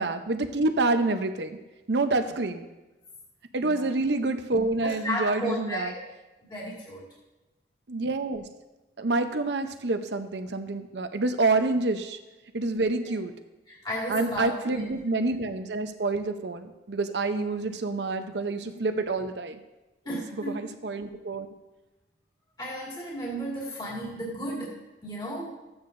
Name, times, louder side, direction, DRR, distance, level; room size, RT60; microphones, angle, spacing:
voice 1, 0.0-1.6 1.9-2.7 3.5-5.9 7.9-8.4 9.0-12.2 12.5-13.3 14.1-19.6 20.5-21.5, right 3 dB, 75° right, 8 dB, 0.7 m, -27 dB
voice 2, 4.8-6.0 6.5-7.1 13.7-15.0 20.1-20.7 22.6-25.5, equal, 25° left, -5 dB, 2.1 m, -34 dB
14.0 x 8.7 x 2.6 m, 1.1 s
head